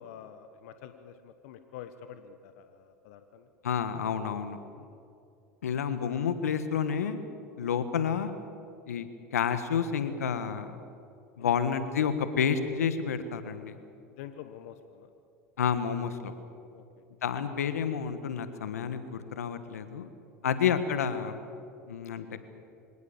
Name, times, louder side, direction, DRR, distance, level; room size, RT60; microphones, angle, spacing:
voice 1, 0.0-3.5 4.7-4.9 7.6-7.8 11.4-11.6 14.1-15.1 16.7-17.0 20.4-20.6, left 9 dB, 70° left, 9 dB, 1.3 m, -47 dB
voice 2, 3.6-4.6 5.6-7.2 7.6-8.3 8.9-10.7 11.4-13.8 15.6-16.3 17.2-20.1 20.4-21.3 21.9-22.4, left 7 dB, 85° left, 11 dB, 1.5 m, -30 dB
24.5 x 18.5 x 7.3 m, 2.6 s
hypercardioid pair, 85°, 8 cm